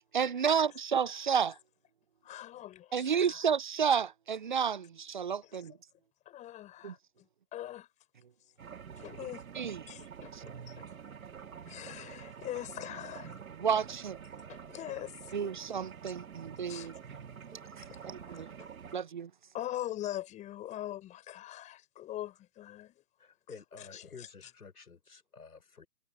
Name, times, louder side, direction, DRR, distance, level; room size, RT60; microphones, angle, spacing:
voice 1, 0.1-1.6 2.9-5.7 6.8-6.9 9.6-9.8 10.3-10.4 13.6-14.2 15.3-16.9 17.8-17.9 18.3-18.5 18.9-19.3, right 7 dB, 35° right, 0.6 m, -31 dB
voice 2, 2.2-2.8 3.1-3.5 5.4-5.7 6.2-7.9 9.0-9.4 9.9-10.3 10.7-10.9 11.6-13.4 14.5-15.5 16.7-17.0 17.9-18.7 19.5-23.0 23.8-24.3, left 13 dB, 15° left, 6.4 m, -42 dB
sound 1, 8.6-19.0, right 7 dB, 60° right, 3.0 m, -47 dB
voice 3, 23.2-25.9, left 5 dB, 75° left, 6.4 m, -51 dB
figure-of-eight pair, 145°, 46 cm